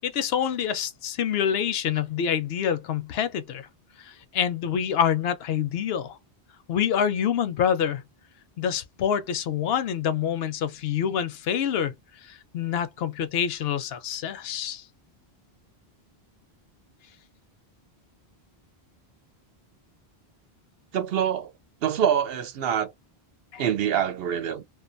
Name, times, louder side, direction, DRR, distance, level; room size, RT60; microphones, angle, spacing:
voice 1, 0.0-3.7 4.0-6.2 6.7-8.0 8.6-11.9 12.2-14.8 23.5-23.6, left 8 dB, 75° left, 0.8 m, -26 dB
voice 2, 20.9-21.5 21.8-22.9 23.6-24.6, right 9 dB, 70° right, 0.8 m, -25 dB
2.4 x 2.3 x 2.5 m
omnidirectional pair, 1.0 m